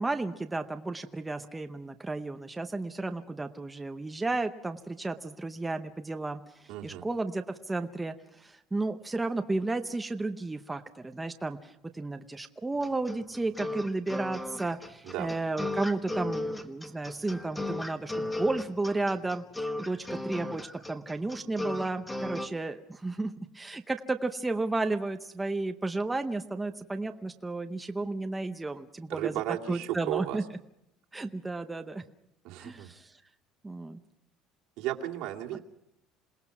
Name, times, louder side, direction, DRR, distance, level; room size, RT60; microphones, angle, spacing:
voice 1, 0.0-29.4 29.7-30.4 31.1-32.0 32.6-33.2 33.6-34.0, right 2 dB, 10° right, 6 dB, 0.7 m, -33 dB
voice 2, 6.7-7.1 15.0-15.3 29.1-30.4 32.4-32.9 34.8-35.6, right 13 dB, 70° right, 1 dB, 2.3 m, -34 dB
sound 1, 12.8-22.5, left 1 dB, 5° left, 1.2 m, -36 dB
27.5 x 18.5 x 6.0 m, 0.81 s
cardioid pair, 165°, 0 cm